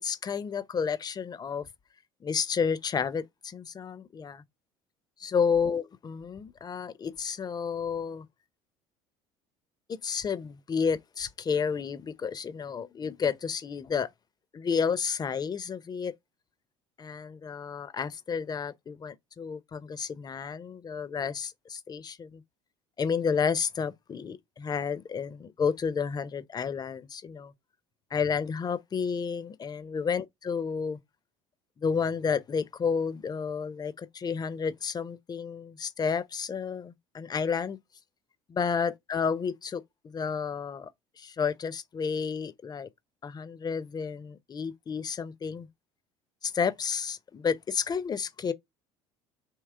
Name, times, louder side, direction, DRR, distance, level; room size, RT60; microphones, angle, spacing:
voice 1, 0.0-1.7 2.2-4.4 5.2-8.3 10.0-14.1 14.5-16.1 17.0-22.4 23.0-27.5 28.1-31.0 31.8-37.8 38.5-40.9 41.2-42.9 43.2-45.7 46.4-48.5, left 6 dB, 30° left, 0.6 m, -31 dB
3.6 x 2.9 x 4.4 m
supercardioid pair, 80°, 14 cm